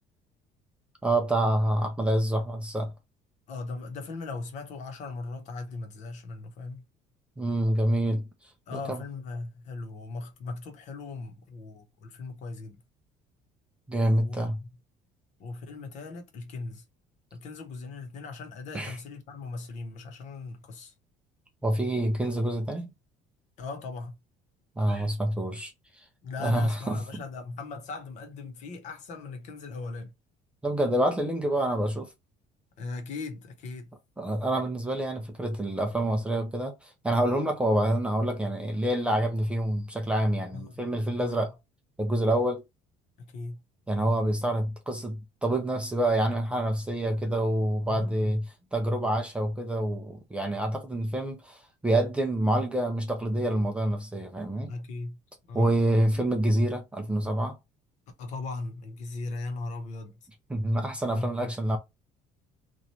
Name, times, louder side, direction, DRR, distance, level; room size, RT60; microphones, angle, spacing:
voice 1, 1.0-2.9 7.4-8.3 8.7-9.0 13.9-14.6 18.7-19.0 21.6-22.9 24.8-26.0 26.4-27.2 30.6-32.1 34.2-41.5 42.0-42.6 43.9-54.8 55.5-57.6 60.5-61.8, right 1 dB, 5° right, 0.5 m, -27 dB
voice 2, 3.5-6.8 8.7-12.8 14.2-14.4 15.4-16.8 17.3-20.9 23.6-24.1 26.2-30.1 32.8-33.9 40.5-40.8 41.2-41.4 43.2-43.6 47.9-48.3 54.7-55.2 55.4-55.9 58.2-60.1 61.1-61.5, left 3 dB, 50° left, 1.0 m, -38 dB
3.0 x 2.5 x 4.2 m
cardioid pair, 170°, 15 cm